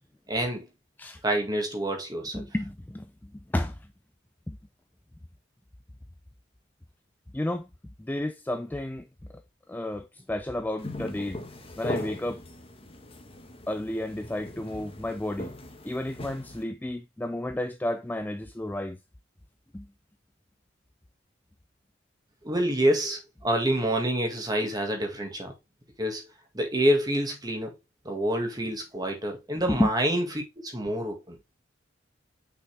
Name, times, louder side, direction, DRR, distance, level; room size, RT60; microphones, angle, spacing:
voice 1, 0.3-0.7 1.2-2.4 22.4-25.5 26.0-26.2 26.5-27.7 28.1-30.2 30.6-31.4, right 1 dB, 20° right, 1.9 m, -27 dB
voice 2, 2.3-3.9 4.5-4.6 7.3-7.7 8.0-9.1 9.7-11.4 11.8-12.4 13.7-15.5 15.8-19.0 19.7-19.9 29.7-29.9, left 1 dB, 10° left, 0.3 m, -31 dB
sound 1, 10.8-16.6, left 1 dB, 30° left, 1.2 m, -39 dB
6.1 x 5.5 x 3.3 m
head